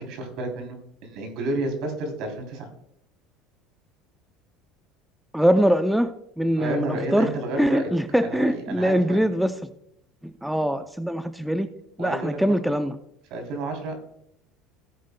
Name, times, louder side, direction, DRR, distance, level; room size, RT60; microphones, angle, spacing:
voice 1, 0.0-2.7 6.5-7.9 8.2-9.3 12.0-12.7 13.3-14.0, right 2 dB, 60° right, 3 dB, 3.3 m, -31 dB
voice 2, 5.3-7.3 7.6-9.5 10.4-11.7 12.0-12.9, equal, ahead, 9 dB, 0.4 m, -22 dB
17.0 x 8.4 x 2.2 m, 0.75 s
cardioid pair, 135°, 0 cm